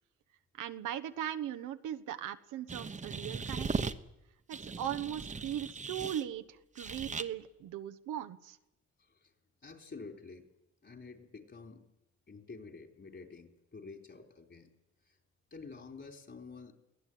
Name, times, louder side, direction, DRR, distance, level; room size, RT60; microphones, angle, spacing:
voice 1, 0.5-3.9 4.5-8.6, right 11 dB, 85° right, 10 dB, 1.2 m, -39 dB
sound 1, 2.7-3.9 4.5-6.2 6.8-7.3, right 4 dB, 25° right, 1.1 m, -38 dB
voice 2, 9.6-10.4 10.8-11.9 12.3-14.7 15.1-15.2 15.5-16.7, left 4 dB, 40° left, 4 dB, 3.9 m, -49 dB
23.0 x 16.5 x 9.3 m, 0.89 s
cardioid pair, 90°, 30 cm